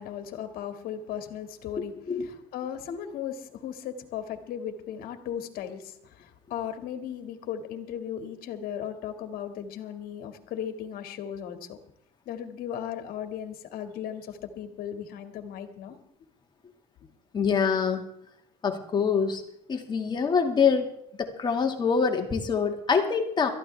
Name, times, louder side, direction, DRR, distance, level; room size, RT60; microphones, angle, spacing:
voice 1, 0.0-11.8 12.3-16.0, left 9 dB, 60° left, 7 dB, 2.1 m, -36 dB
voice 2, 17.3-18.0 18.6-19.4 19.7-20.9 21.2-23.5, left 6 dB, 25° left, 4 dB, 2.0 m, -25 dB
22.0 x 14.0 x 3.4 m, 0.73 s
cardioid pair, 140°, 17 cm